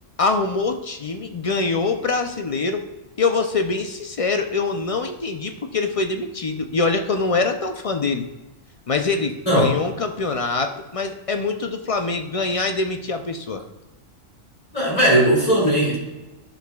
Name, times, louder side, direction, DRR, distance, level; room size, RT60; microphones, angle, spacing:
voice 1, 0.2-2.8 3.2-8.3 8.9-13.6, left 3 dB, 55° left, 6 dB, 0.3 m, -24 dB
voice 2, 14.7-16.0, right 1 dB, 30° left, -5 dB, 2.7 m, -17 dB
11.0 x 6.3 x 2.3 m, 1.1 s
omnidirectional pair, 1.3 m